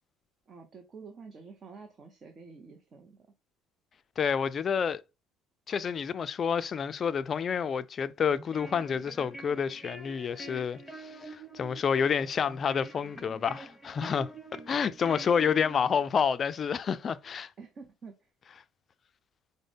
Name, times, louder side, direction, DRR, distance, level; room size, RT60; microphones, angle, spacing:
voice 1, 0.5-3.3 15.0-15.3 17.6-18.3, right 4 dB, 40° right, 0.7 m, -49 dB
voice 2, 4.2-5.0 5.7-17.5, left 7 dB, 40° left, 0.3 m, -29 dB
sound 1, 8.3-16.3, right 2 dB, 5° left, 0.8 m, -47 dB
5.0 x 2.1 x 3.3 m
supercardioid pair, 95°, 0 cm